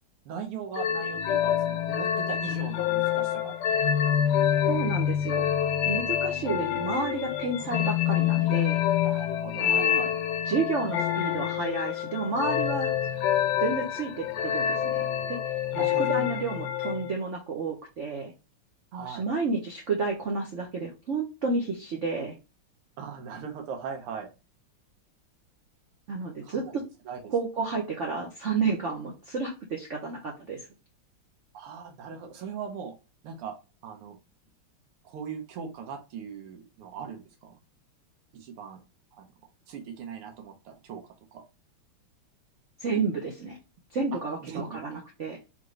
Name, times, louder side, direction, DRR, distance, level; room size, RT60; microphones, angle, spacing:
voice 1, 0.3-3.5 3.9-4.0 6.2-6.5 9.0-10.2 15.7-16.3 18.9-19.3 23.0-24.3 26.4-27.3 31.5-32.9 33.2-33.6 33.8-34.2 35.0-37.6 38.3-38.8 39.1-39.3 39.7-41.0 41.3-41.4 44.4-44.8, right 6 dB, 90° right, 3 dB, 1.8 m, -39 dB
sound 1, 0.7-17.2, left 10 dB, 75° left, 1.0 m, -27 dB
voice 2, 4.7-5.5 5.8-8.8 9.6-10.0 10.4-12.9 13.6-15.6 16.0-18.3 18.9-22.4 26.1-26.8 27.3-30.7 42.8-43.6 43.9-45.4, right 4 dB, 65° right, 1 dB, 0.7 m, -31 dB
3.6 x 3.6 x 3.1 m, 0.29 s
omnidirectional pair, 2.4 m